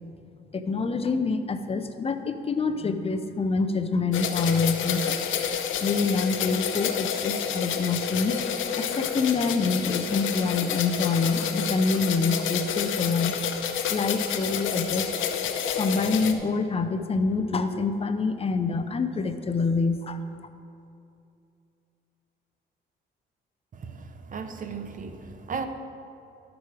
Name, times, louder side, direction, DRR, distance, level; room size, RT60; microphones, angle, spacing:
voice 1, 0.5-5.2 5.8-8.4 8.8-13.3 13.9-15.3 15.8-20.2, left 4 dB, 30° left, 9 dB, 0.6 m, -26 dB
sound 1, 4.1-16.3, left 8 dB, 80° left, 0.7 m, -29 dB
voice 2, 23.7-25.7, right 5 dB, 40° right, 8 dB, 0.8 m, -36 dB
11.5 x 6.1 x 4.8 m, 2.6 s
cardioid pair, 90°, 20 cm